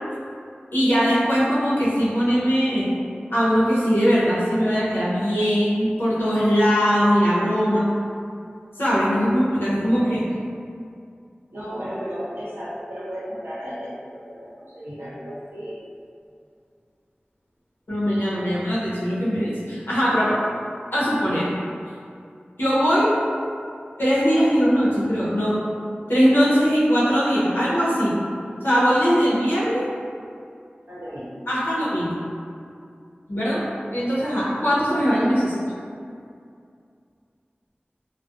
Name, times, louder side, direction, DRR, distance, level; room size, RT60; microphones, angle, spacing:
voice 1, 0.7-2.9 3.3-7.8 8.8-10.2 17.9-20.4 20.9-21.5 22.6-23.1 24.0-25.6 26.1-28.1 28.6-29.8 31.5-32.1 33.3-33.6 33.9-35.6, equal, 80° left, -10 dB, 0.8 m, -20 dB
voice 2, 11.5-15.8 18.2-18.5 30.9-31.3 32.7-32.8, equal, 80° right, -10 dB, 0.8 m, -35 dB
2.4 x 2.2 x 2.5 m, 2.4 s
wide cardioid pair, 55°, 4 cm